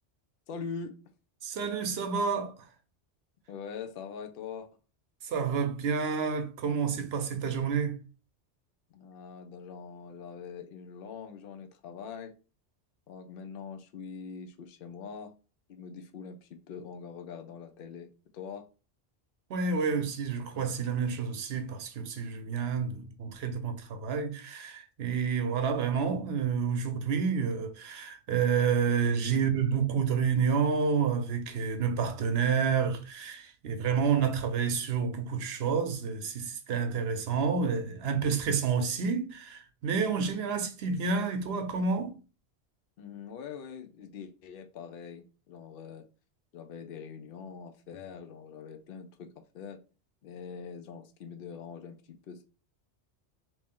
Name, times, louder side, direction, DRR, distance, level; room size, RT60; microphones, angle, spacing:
voice 1, 0.5-1.0 3.5-4.7 8.9-12.3 13.1-15.3 15.7-18.7 43.0-46.0 46.5-49.3 49.5-49.8 50.2-52.4, left 6 dB, 60° left, 0.7 m, -43 dB
voice 2, 1.4-2.5 5.2-8.0 19.5-42.2, right 6 dB, 65° right, 0.9 m, -29 dB
3.0 x 2.7 x 3.6 m
omnidirectional pair, 1.2 m